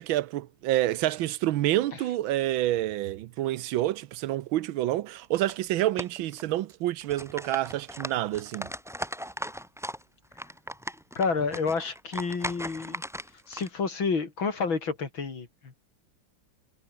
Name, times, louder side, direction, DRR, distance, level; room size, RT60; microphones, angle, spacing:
voice 1, 0.0-8.7, right 14 dB, 85° right, 1.6 m, -28 dB
sound 1, 5.5-5.6 6.0-6.7 7.0-10.0 10.3-13.7, equal, ahead, 2.4 m, -38 dB
voice 2, 11.2-13.0 13.5-15.8, left 5 dB, 80° left, 4.1 m, -29 dB
omnidirectional pair, 2.1 m